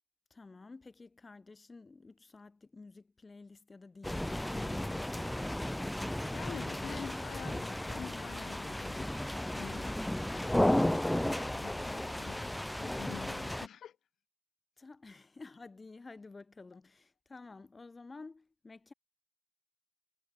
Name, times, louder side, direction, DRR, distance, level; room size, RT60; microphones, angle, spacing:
voice 1, 0.3-5.2 14.8-18.9, left 3 dB, 25° left, 3.6 m, -51 dB
sound 1, 4.0-13.7, left 1 dB, 5° left, 0.6 m, -34 dB
voice 2, 6.3-9.1 9.5-10.0 10.9-14.0 16.7-16.8, left 9 dB, 65° left, 2.0 m, -47 dB
cardioid pair, 90°, 0 cm